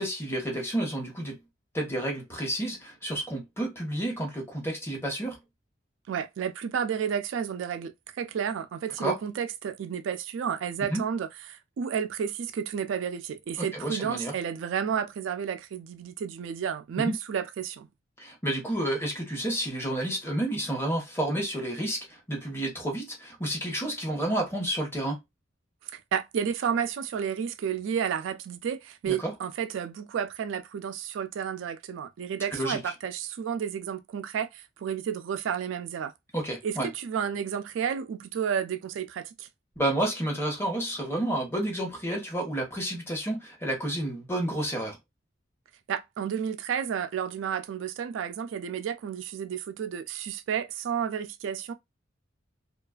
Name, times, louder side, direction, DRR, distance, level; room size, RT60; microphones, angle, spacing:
voice 1, 0.0-1.4 1.7-5.4 9.0-9.2 10.9-11.0 13.6-14.3 17.0-17.1 18.2-25.2 29.1-29.3 32.5-32.8 36.3-36.9 39.8-45.0, right 1 dB, 15° left, 0.9 m, -30 dB
voice 2, 6.1-17.9 25.9-36.1 36.6-39.5 45.9-51.7, right 7 dB, 75° right, 0.3 m, -31 dB
2.4 x 2.3 x 2.3 m
head